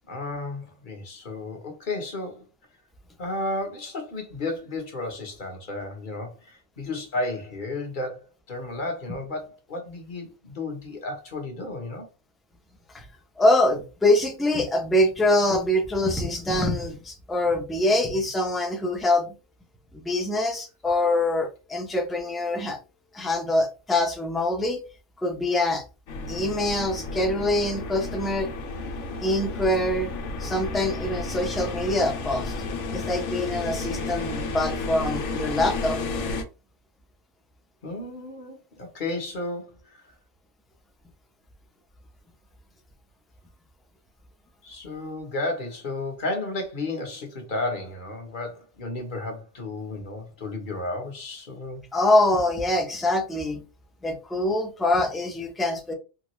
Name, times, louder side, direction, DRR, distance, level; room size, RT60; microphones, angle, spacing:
voice 1, 0.1-2.5 3.2-12.1 37.8-40.0 44.6-51.8, left 2 dB, 50° left, 1.0 m, -33 dB
voice 2, 13.4-19.3 19.9-22.8 23.1-24.8 25.2-25.8 26.3-28.5 29.2-30.1 30.4-32.6 32.9-36.0 51.9-53.6 54.0-55.9, left 1 dB, ahead, 0.5 m, -24 dB
sound 1, 26.1-36.4, left 3 dB, 85° left, 1.0 m, -32 dB
3.6 x 2.3 x 3.0 m
omnidirectional pair, 1.2 m